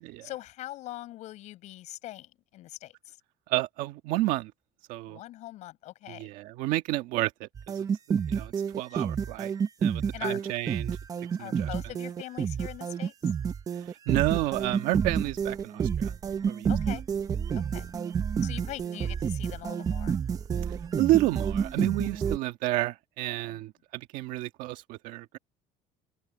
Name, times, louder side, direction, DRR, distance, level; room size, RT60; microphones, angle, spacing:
voice 1, 0.2-3.2 5.1-6.3 8.9-9.4 10.1-10.5 11.4-13.1 16.7-17.0 17.5-17.9 18.4-20.2 23.5-23.6, left 15 dB, 55° left, 7.2 m, -42 dB
voice 2, 3.5-4.5 4.9-5.2 6.1-7.5 7.7-9.5 9.8-11.0 11.4-11.7 13.8-16.1 16.4-16.7 21.0-25.4, right 17 dB, 70° right, 1.6 m, -30 dB
sound 1, 7.6-22.4, right 7 dB, 25° right, 0.9 m, -29 dB
open air
cardioid pair, 165°, 14 cm